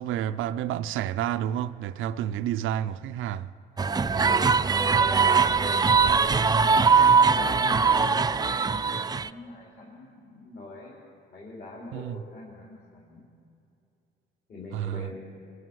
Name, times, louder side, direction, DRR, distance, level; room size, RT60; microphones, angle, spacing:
voice 1, 0.0-3.5 11.9-12.2 14.7-15.1, right 11 dB, 85° right, 0.5 m, -30 dB
voice 2, 3.7-6.9 7.2-10.9 11.3-13.2 14.5-15.1, left 2 dB, 55° left, 3.7 m, -43 dB
sound 1, 3.8-9.3, right 5 dB, 20° right, 0.4 m, -21 dB
23.5 x 9.6 x 6.2 m
cardioid pair, 90°, 20 cm